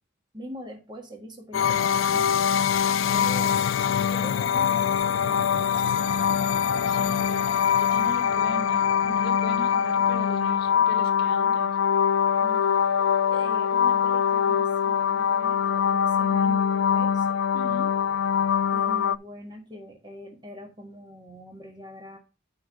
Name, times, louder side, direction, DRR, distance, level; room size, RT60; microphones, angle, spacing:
voice 1, 0.3-2.3 3.1-3.6 4.1-6.1 12.4-12.8 13.3-17.3 18.7-22.2, equal, 25° right, 1.6 m, -42 dB
sound 1, 1.5-19.2, left 8 dB, 85° left, 0.3 m, -23 dB
voice 2, 6.9-11.7 17.5-18.6, left 1 dB, 50° left, 1.7 m, -40 dB
9.7 x 3.9 x 5.1 m
head